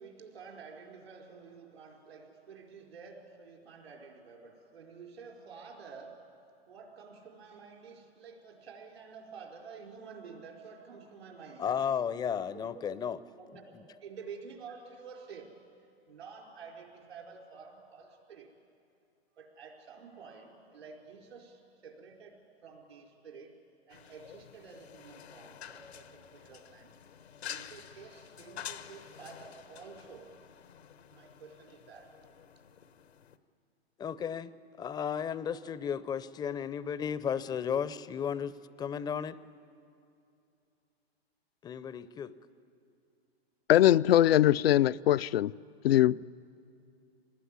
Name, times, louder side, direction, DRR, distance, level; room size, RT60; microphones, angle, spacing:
voice 1, 0.0-6.2 6.7-11.7 12.5-13.0 13.4-15.5 16.1-18.5 19.3-23.5 23.9-26.9 27.5-30.3 31.0-32.1, right 5 dB, 80° right, 4.7 m, -50 dB
voice 2, 11.6-13.2 34.0-34.5 34.8-39.4 41.6-42.3, left 7 dB, 15° left, 0.5 m, -34 dB
sound 1, 23.9-33.4, left 9 dB, 85° left, 1.2 m, -49 dB
voice 3, 43.7-45.5 45.8-46.2, left 13 dB, 70° left, 0.5 m, -22 dB
25.0 x 20.0 x 9.9 m
hypercardioid pair, 120°, 31 cm